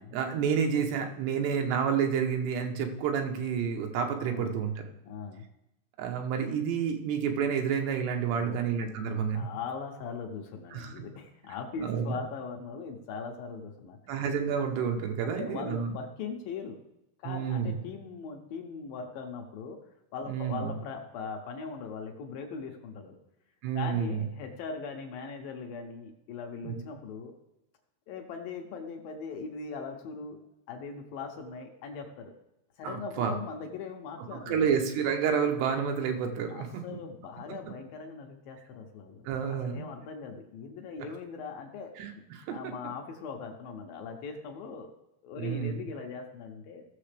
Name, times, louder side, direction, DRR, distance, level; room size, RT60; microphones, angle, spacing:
voice 1, 0.0-4.8 6.0-9.5 10.7-10.9 11.8-12.2 14.1-15.9 17.2-17.8 20.3-20.7 23.6-24.2 26.6-26.8 32.8-33.3 34.3-36.8 39.3-39.9 42.0-42.7 45.4-45.9, right 7 dB, 90° right, 4 dB, 3.2 m, -30 dB
voice 2, 4.2-4.6 5.0-5.5 8.3-8.7 9.0-14.0 15.2-16.8 17.2-19.8 20.1-23.2 23.7-27.3 28.1-32.3 32.8-34.7 36.5-41.9 42.5-44.9 45.2-46.9, left 5 dB, 70° left, 3 dB, 2.4 m, -40 dB
17.0 x 6.9 x 3.4 m, 0.87 s
omnidirectional pair, 4.6 m